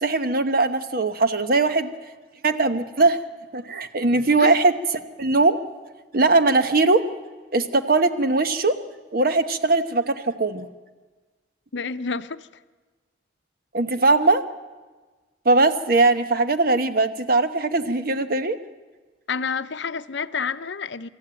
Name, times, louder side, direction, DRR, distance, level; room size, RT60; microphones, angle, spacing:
voice 1, 0.0-1.9 2.4-3.2 3.5-4.7 5.2-5.6 6.1-7.0 7.5-8.7 9.1-10.7 13.7-14.4 15.4-18.6, right 3 dB, 50° right, 1.0 m, -20 dB
voice 2, 11.7-12.5 19.3-21.1, left 5 dB, 70° left, 0.7 m, -29 dB
24.5 x 13.5 x 9.0 m
head